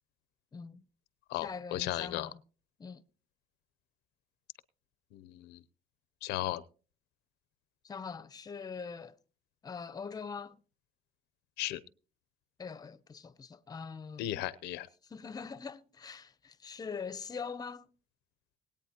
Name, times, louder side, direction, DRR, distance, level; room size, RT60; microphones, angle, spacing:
voice 1, 0.5-0.8 1.4-2.4 2.8-3.0 7.8-9.2 9.6-10.6 12.6-14.3 15.1-17.9, left 5 dB, 25° left, 0.7 m, -43 dB
voice 2, 1.3-2.3 5.1-5.6 6.2-6.6 11.6-11.8 14.2-14.9, left 15 dB, 90° left, 0.7 m, -35 dB
20.0 x 8.8 x 2.9 m
cardioid pair, 110°, 17 cm